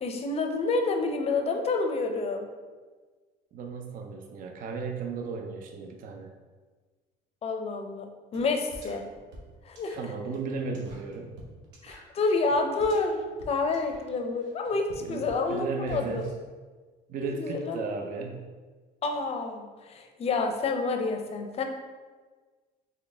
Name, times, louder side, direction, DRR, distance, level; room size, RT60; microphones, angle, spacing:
voice 1, 0.0-2.5 7.4-9.0 9.6-9.9 11.8-16.3 17.2-18.3 19.0-21.6, left 3 dB, 35° left, 4 dB, 0.5 m, -29 dB
voice 2, 3.5-6.3 10.0-11.4 15.0-16.4 17.1-18.5, right 4 dB, 50° right, 3 dB, 0.5 m, -35 dB
sound 1, 8.3-8.5 8.7-16.3, equal, 80° right, 1.0 m, -49 dB
4.1 x 3.0 x 3.4 m, 1.4 s
cardioid pair, 125°, 18 cm